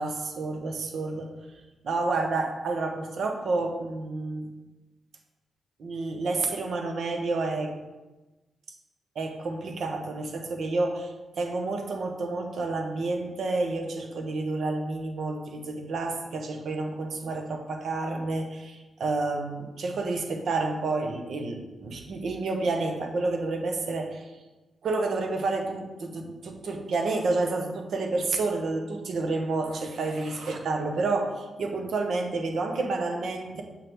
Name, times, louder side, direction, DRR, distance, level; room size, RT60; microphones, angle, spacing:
voice 1, 0.0-1.3 1.8-4.5 5.8-7.8 9.1-24.3 24.8-33.6, right 3 dB, 70° right, 4 dB, 1.0 m, -29 dB
6.8 x 5.7 x 3.6 m, 1.1 s
cardioid pair, 85°, 0 cm